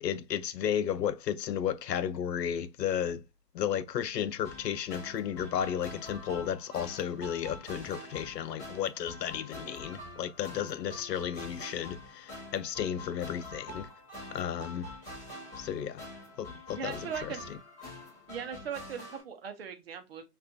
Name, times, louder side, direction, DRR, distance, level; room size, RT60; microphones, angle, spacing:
voice 1, 0.0-3.2 3.5-13.9 14.3-14.9 15.6-16.0 16.4-17.3, left 9 dB, 90° left, 0.6 m, -33 dB
sound 1, 4.4-19.2, left 2 dB, 15° left, 1.3 m, -46 dB
voice 2, 16.8-17.5 18.3-20.2, right 7 dB, 40° right, 0.7 m, -39 dB
5.2 x 2.5 x 2.2 m
hypercardioid pair, 165°, 48 cm